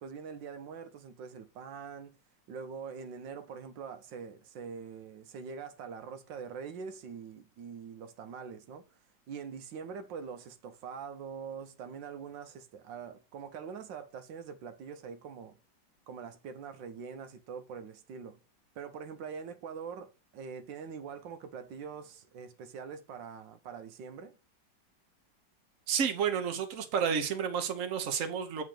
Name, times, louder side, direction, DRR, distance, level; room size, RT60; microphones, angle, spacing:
voice 1, 0.0-2.2 2.5-8.9 9.3-15.6 16.1-18.4 18.7-24.4, right 6 dB, 85° right, 1.5 m, -44 dB
voice 2, 25.9-28.6, right 7 dB, 50° right, 1.3 m, -31 dB
8.2 x 3.7 x 6.6 m
omnidirectional pair, 1.9 m